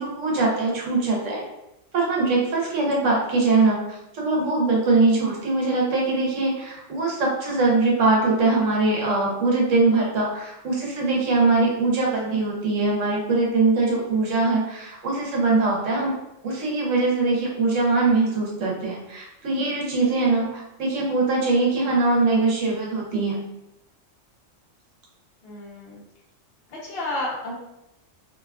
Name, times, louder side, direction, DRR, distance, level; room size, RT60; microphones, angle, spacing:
voice 1, 0.0-1.4 1.9-16.1 16.4-23.4, right 3 dB, 75° right, -3 dB, 1.1 m, -22 dB
voice 2, 25.4-26.0 26.7-27.5, left 2 dB, 55° left, -6 dB, 0.9 m, -31 dB
2.8 x 2.2 x 2.3 m, 0.88 s
omnidirectional pair, 1.3 m